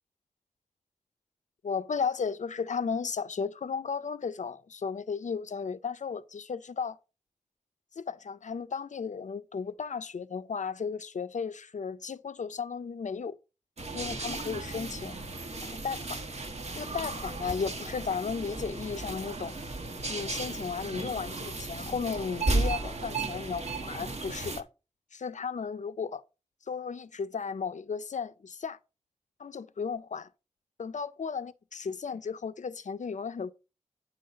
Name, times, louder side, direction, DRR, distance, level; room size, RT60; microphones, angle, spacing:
voice 1, 1.6-7.0 8.0-13.4 13.9-15.2 15.6-16.2 16.7-19.6 20.1-24.7 25.1-26.2 26.7-28.8 29.4-30.3 30.8-33.5, left 5 dB, 85° left, 0.5 m, -34 dB
sound 1, 13.8-24.6, right 2 dB, 65° right, 1.1 m, -35 dB
9.3 x 3.9 x 5.1 m
wide cardioid pair, 80°, 12 cm